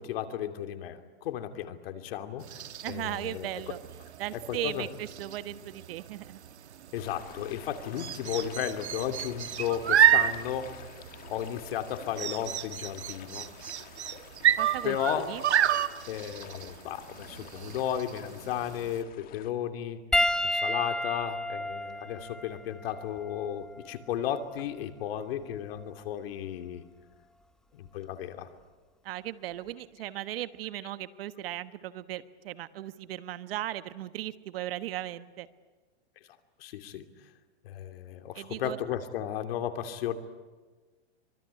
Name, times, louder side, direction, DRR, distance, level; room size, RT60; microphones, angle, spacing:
voice 1, 0.0-2.6 2.9-3.5 4.3-4.9 6.9-10.8 11.3-13.5 14.8-15.4 16.1-20.0 20.4-26.8 27.7-28.5 36.6-37.0 37.6-40.2, left 10 dB, 60° left, 7 dB, 2.8 m, -34 dB
sound 1, 2.4-19.0, right 11 dB, 90° right, 1.4 m, -30 dB
voice 2, 2.8-3.8 4.2-6.4 14.6-15.4 29.0-35.5 38.3-38.8, right 14 dB, 60° right, 13 dB, 1.3 m, -37 dB
sound 2, 6.9-19.5, left 10 dB, 25° left, 2.0 m, -50 dB
Piano, 20.1-24.8 25.7-25.9 27.9-28.0, left 1 dB, ahead, 1.0 m, -32 dB
25.0 x 23.5 x 9.8 m, 1.3 s
hypercardioid pair, 140°, 33 cm